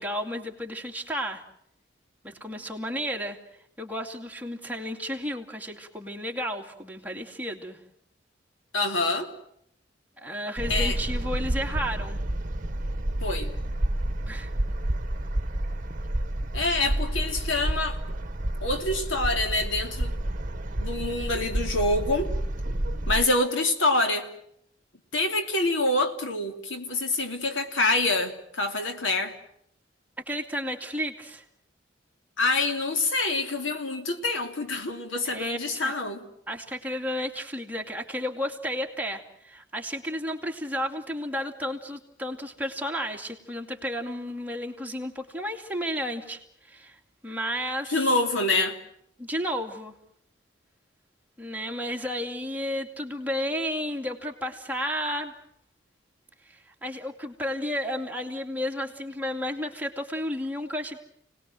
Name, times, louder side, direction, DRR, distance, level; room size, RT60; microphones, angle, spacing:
voice 1, 0.0-1.4 2.2-3.4 3.8-7.8 10.2-12.2 14.3-14.5 30.3-31.4 35.2-35.9 36.5-48.1 49.2-49.9 51.4-55.3 56.4-61.0, equal, 10° right, 1 dB, 2.5 m, -32 dB
voice 2, 8.7-9.3 10.7-10.9 13.2-13.5 16.5-18.0 18.6-20.1 20.8-22.3 23.1-24.3 25.1-29.3 32.4-36.2 47.9-48.7, left 2 dB, 85° left, 6 dB, 3.1 m, -26 dB
sound 1, 10.6-23.2, right 1 dB, 45° right, 1.3 m, -29 dB
30.0 x 19.5 x 7.7 m, 0.74 s
head